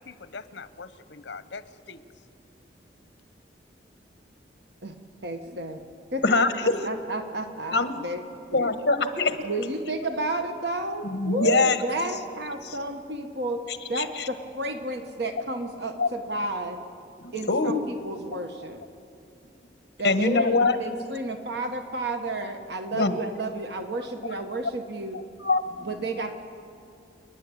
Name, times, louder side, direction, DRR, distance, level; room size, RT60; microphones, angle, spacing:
voice 1, 0.0-2.0, left 4 dB, 85° left, 13 dB, 0.9 m, -42 dB
voice 2, 5.2-5.8 6.1-8.2 8.5-8.7 9.4-13.6 13.9-16.8 17.3-18.8 20.0-25.2 25.8-26.3, right 2 dB, 65° right, 6 dB, 1.3 m, -32 dB
voice 3, 6.2-6.7 7.7-7.9 8.5-9.4 11.0-11.8 12.6-12.7 13.9-14.3 16.0-16.1 17.5-17.7 20.0-20.8 22.9-23.2 25.4-25.9, left 3 dB, 65° left, 9 dB, 1.4 m, -23 dB
29.5 x 10.5 x 8.6 m, 2.6 s
head